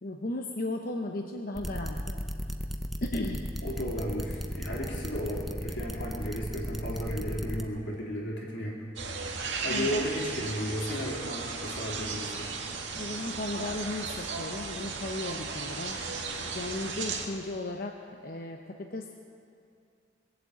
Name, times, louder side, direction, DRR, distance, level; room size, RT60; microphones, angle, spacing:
voice 1, 0.0-2.2 3.0-3.5 9.7-10.0 12.9-16.0 16.4-18.0 18.2-19.1, left 2 dB, 50° left, 2 dB, 0.8 m, -35 dB
sound 1, 1.6-7.6, equal, ahead, 0.7 m, -35 dB
voice 2, 3.6-8.8 9.6-12.5, equal, 85° left, -3 dB, 3.6 m, -34 dB
sound 2, 9.0-17.3, right 4 dB, 80° right, 1.8 m, -35 dB
21.5 x 7.7 x 8.4 m, 2.4 s
head